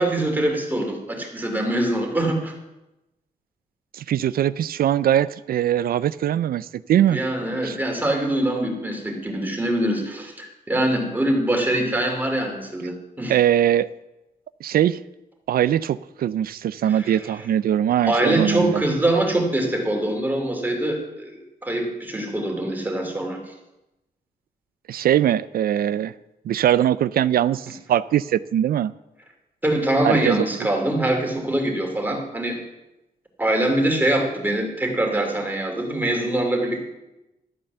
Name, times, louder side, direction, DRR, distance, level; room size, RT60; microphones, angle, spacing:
voice 1, 0.0-2.5 7.1-13.4 16.9-17.4 18.1-23.5 29.6-32.6 33.4-36.8, right 1 dB, 10° right, 1 dB, 2.6 m, -24 dB
voice 2, 3.9-7.2 7.6-7.8 13.3-13.9 14.6-15.0 15.5-18.8 24.9-26.1 26.5-28.9 30.0-30.5, right 11 dB, 75° right, 16 dB, 0.4 m, -21 dB
13.0 x 8.6 x 6.8 m, 0.96 s
wide cardioid pair, 145°, 16 cm